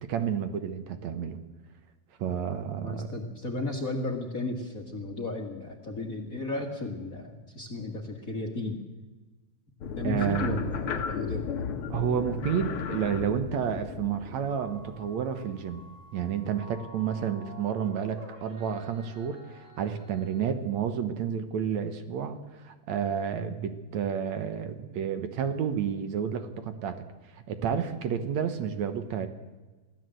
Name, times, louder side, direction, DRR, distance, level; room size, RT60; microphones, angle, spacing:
voice 1, 0.0-1.4 2.2-3.1 10.0-10.6 11.9-15.8 16.1-27.0 27.3-29.3, right 8 dB, 65° right, 9 dB, 2.3 m, -30 dB
voice 2, 2.8-8.8 9.9-11.5, left 2 dB, 30° left, 3 dB, 1.9 m, -34 dB
sound 1, 9.8-15.8, left 6 dB, 55° left, 1.8 m, -35 dB
sound 2, 14.4-20.4, equal, 30° right, 4.0 m, -50 dB
24.0 x 16.0 x 7.8 m, 1.2 s
omnidirectional pair, 3.6 m